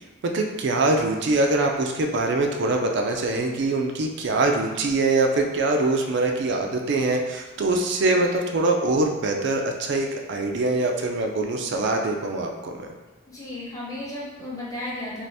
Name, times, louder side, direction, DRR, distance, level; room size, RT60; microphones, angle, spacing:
voice 1, 0.2-12.9, right 2 dB, 55° right, 3 dB, 0.4 m, -23 dB
voice 2, 13.3-15.2, left 1 dB, 15° left, -7 dB, 0.7 m, -34 dB
2.6 x 2.5 x 3.3 m, 1.2 s
head